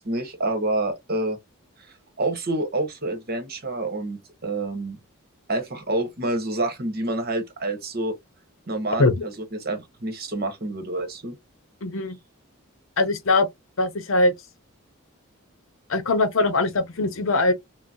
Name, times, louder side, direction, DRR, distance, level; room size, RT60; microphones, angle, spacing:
voice 1, 0.0-1.4 2.2-5.0 5.5-8.1 8.7-9.3 9.6-11.3, right 2 dB, 45° right, 1.0 m, -28 dB
voice 2, 11.8-12.2 13.0-13.5 13.8-14.3 15.9-17.5, left 2 dB, 65° left, 0.7 m, -21 dB
3.8 x 2.1 x 2.6 m
head